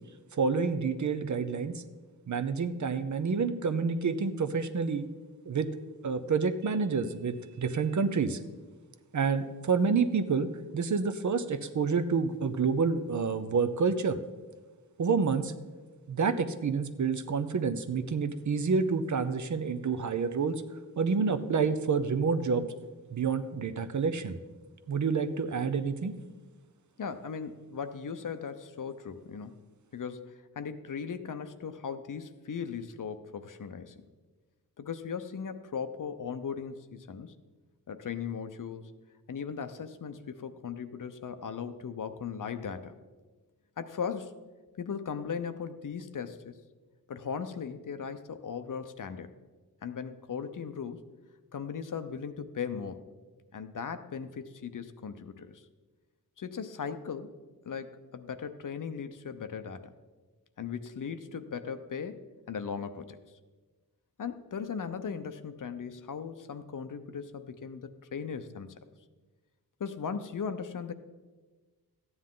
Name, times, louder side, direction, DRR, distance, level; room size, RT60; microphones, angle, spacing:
voice 1, 0.3-1.8 2.3-5.0 5.5-5.7 6.0-8.4 9.1-10.5 10.7-14.2 15.0-15.5 16.1-20.5 21.0-22.7 23.1-24.4 24.9-26.1, right 5 dB, 50° right, 11 dB, 0.6 m, -28 dB
voice 2, 27.0-29.7 29.9-33.9 34.8-37.3 37.9-38.9 39.3-42.9 43.8-44.3 44.8-46.5 47.1-49.3 49.8-51.0 51.5-53.0 53.5-55.6 56.4-57.3 57.7-59.9 60.6-63.2 64.2-68.7 69.8-70.9, left 6 dB, 55° left, 10 dB, 0.7 m, -38 dB
13.5 x 9.6 x 3.8 m, 1.3 s
wide cardioid pair, 100°, 38 cm